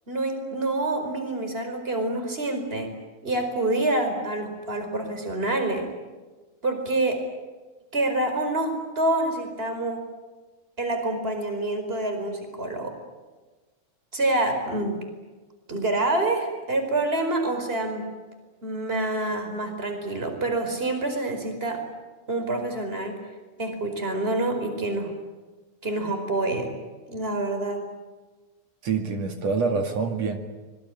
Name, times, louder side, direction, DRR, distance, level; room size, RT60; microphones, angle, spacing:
voice 1, 0.1-2.9 3.2-5.8 6.6-7.2 7.9-10.0 10.8-12.9 14.1-15.0 15.7-18.0 18.6-21.8 22.3-23.2 23.6-25.1 25.8-26.7 27.1-27.8, right 2 dB, 10° right, 6 dB, 4.3 m, -27 dB
voice 2, 28.8-30.4, right 4 dB, 45° right, 5 dB, 2.4 m, -26 dB
25.0 x 22.0 x 9.9 m, 1.3 s
omnidirectional pair, 5.7 m